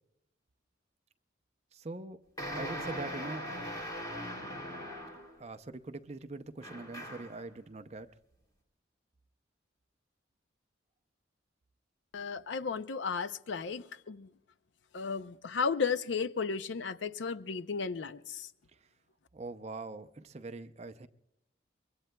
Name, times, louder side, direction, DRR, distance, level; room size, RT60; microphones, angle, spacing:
voice 1, 1.7-2.2 2.5-3.5 5.4-8.1 19.3-21.1, right 3 dB, 35° right, 0.5 m, -43 dB
sound 1, 2.4-5.4 6.6-7.4, equal, 20° left, 2.8 m, -40 dB
voice 2, 12.1-14.3 14.9-18.5, left 5 dB, 75° left, 0.5 m, -34 dB
24.0 x 22.5 x 2.2 m
head